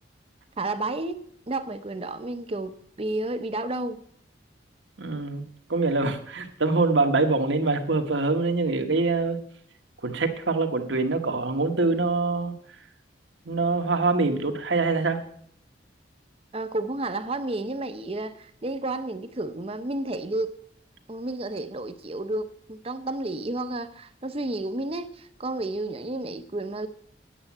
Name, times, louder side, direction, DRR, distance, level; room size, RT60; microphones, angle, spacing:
voice 1, 0.6-4.0 16.5-20.5 21.1-26.9, right 2 dB, 30° right, 0.7 m, -31 dB
voice 2, 5.0-5.4 5.7-9.4 10.0-12.5 13.4-15.2, right 3 dB, 80° right, 1.3 m, -24 dB
8.9 x 8.3 x 7.3 m
head